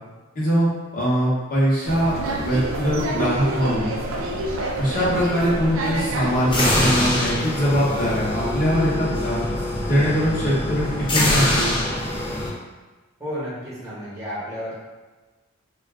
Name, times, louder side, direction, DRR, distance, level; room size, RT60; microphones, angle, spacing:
voice 1, 0.3-3.9 4.8-9.4 9.9-11.7, equal, 45° left, -8 dB, 0.9 m, -22 dB
sound 1, 1.8-6.9, right 1 dB, 70° right, 0.4 m, -27 dB
voice 2, 4.7-5.1 13.2-14.8, equal, 15° right, -10 dB, 1.1 m, -33 dB
sound 2, 6.4-12.5, left 1 dB, 25° left, 0.6 m, -24 dB
2.5 x 2.3 x 3.4 m, 1.2 s
head